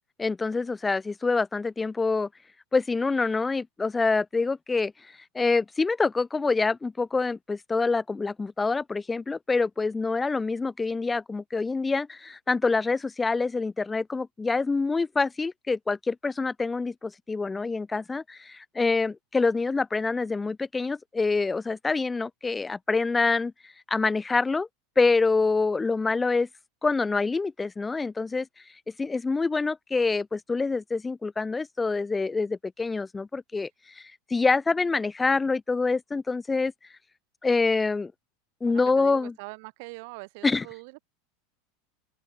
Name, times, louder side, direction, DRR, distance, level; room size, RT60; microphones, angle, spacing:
voice 1, 0.2-2.3 2.7-4.9 5.3-24.7 25.0-26.5 26.8-28.5 29.0-33.7 34.0-36.7 37.4-38.1 38.6-39.3 40.4-40.7, left 4 dB, 10° left, 0.3 m, -26 dB
voice 2, 38.7-41.0, right 30 dB, 60° right, 5.5 m, -43 dB
open air
supercardioid pair, 140°, 0 cm